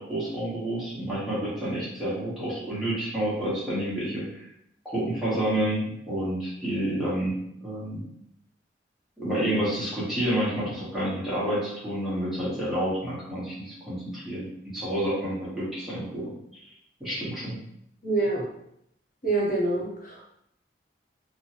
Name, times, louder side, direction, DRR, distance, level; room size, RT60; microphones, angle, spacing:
voice 1, 0.0-4.4 4.8-7.3 7.6-8.0 9.2-14.5 14.7-16.3 17.0-17.6, right 1 dB, ahead, -10 dB, 1.1 m, -29 dB
voice 2, 18.0-18.5 19.2-20.2, right 2 dB, 45° left, -4 dB, 0.9 m, -26 dB
3.0 x 2.1 x 2.9 m, 0.75 s
head